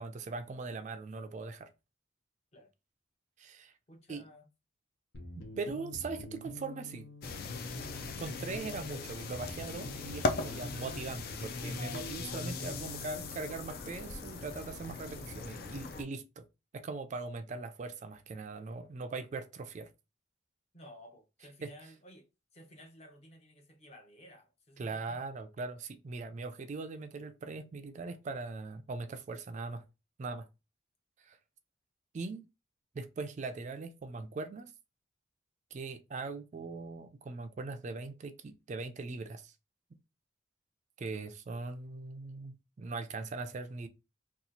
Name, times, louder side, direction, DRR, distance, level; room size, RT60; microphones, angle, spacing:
voice 1, 0.0-1.7 3.4-3.7 4.1-4.2 5.4-7.1 8.2-16.4 16.7-19.9 21.6-21.7 24.8-29.8 30.2-30.5 31.2-31.4 32.1-32.4 32.9-34.7 35.7-39.5 41.0-43.9, right 3 dB, 40° right, 0.3 m, -40 dB
voice 2, 3.9-4.5 20.7-22.3 22.5-25.2, equal, 35° left, 0.8 m, -55 dB
sound 1, 5.1-13.6, left 2 dB, 70° left, 0.8 m, -45 dB
sound 2, 7.2-16.0, left 3 dB, 50° left, 0.4 m, -39 dB
2.8 x 2.3 x 3.9 m
head